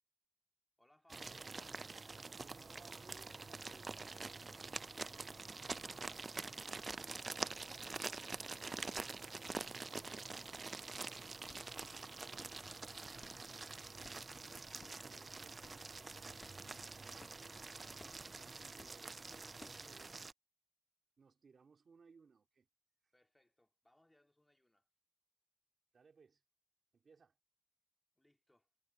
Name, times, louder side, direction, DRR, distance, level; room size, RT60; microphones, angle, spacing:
voice 1, 0.8-1.5 17.4-18.4 19.7-19.9 23.1-24.9 28.1-28.7, left 1 dB, 15° left, 3.0 m, -74 dB
sound 1, 1.1-20.3, right 3 dB, 45° right, 0.3 m, -46 dB
voice 2, 2.4-4.0 13.8-16.9 18.2-20.1 21.2-22.7 23.0-23.1 25.9-26.4 26.9-27.4, right 5 dB, 75° right, 2.6 m, -66 dB
sound 2, 11.9-20.1, left 3 dB, 35° left, 1.9 m, -64 dB
wide cardioid pair, 105°, 0 cm